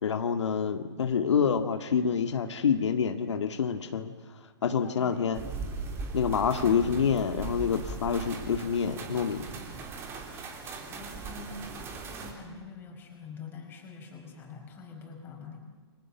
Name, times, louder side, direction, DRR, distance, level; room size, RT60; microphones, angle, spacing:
voice 1, 0.0-4.1 4.6-5.4 6.1-9.4, left 6 dB, 80° left, 7 dB, 2.1 m, -27 dB
voice 2, 4.8-5.4 10.9-15.6, left 4 dB, 15° left, 2 dB, 5.1 m, -45 dB
sound 1, 5.3-12.3, right 4 dB, 15° right, 3.2 m, -39 dB
29.5 x 25.0 x 7.3 m, 1.4 s
hypercardioid pair, 160°, 15 cm